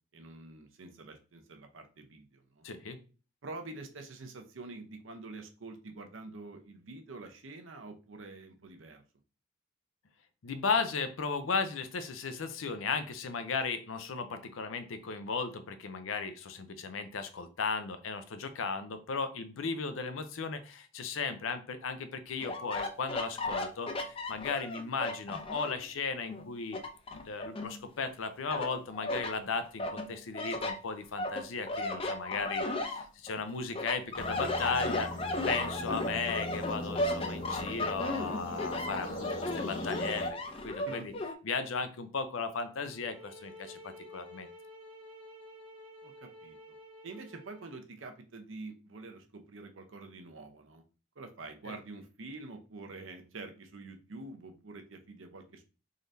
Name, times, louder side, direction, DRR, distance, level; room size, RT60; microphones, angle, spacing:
voice 1, 0.1-2.6 3.4-9.0 40.9-41.2 46.0-46.6 47.0-50.8 51.2-55.7, right 3 dB, 80° right, 6 dB, 0.7 m, -46 dB
voice 2, 2.6-3.0 10.4-26.8 27.1-35.1 35.5-40.4 40.6-41.1 41.4-44.5 51.7-51.8, left 4 dB, 90° left, 10 dB, 0.6 m, -36 dB
sound 1, 22.4-25.9 26.3-28.1 28.5-29.3 29.8-33.4 33.7-41.3, left 2 dB, 30° left, 0.4 m, -35 dB
sound 2, 34.2-40.3, left 1 dB, 75° left, 1.4 m, -40 dB
sound 3, 42.9-47.8, equal, 25° right, 1.0 m, -51 dB
3.8 x 3.2 x 2.6 m, 0.35 s
head